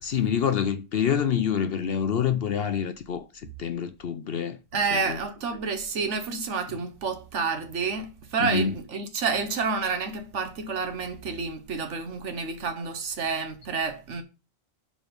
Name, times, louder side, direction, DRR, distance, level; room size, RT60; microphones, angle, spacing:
voice 1, 0.0-4.6 4.9-5.2 8.4-8.7, left 8 dB, 55° left, 0.8 m, -27 dB
voice 2, 4.7-14.2, right 5 dB, 65° right, 1.3 m, -29 dB
6.0 x 5.0 x 5.2 m
omnidirectional pair, 1.3 m